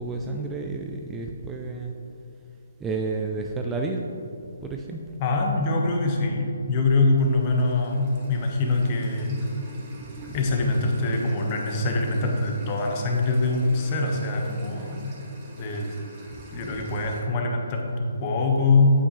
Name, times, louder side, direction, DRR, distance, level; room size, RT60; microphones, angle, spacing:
voice 1, 0.0-1.9 2.8-4.1 4.6-5.0 9.9-10.4 16.3-17.0, right 3 dB, 10° right, 1 dB, 0.4 m, -31 dB
voice 2, 5.2-9.4 10.3-15.1 15.6-15.9 16.5-18.9, left 3 dB, 30° left, 1 dB, 1.2 m, -24 dB
sound 1, 7.2-17.2, right 1 dB, 30° right, 1.6 m, -44 dB
8.5 x 8.1 x 3.2 m, 2.8 s
figure-of-eight pair, 140°, 0 cm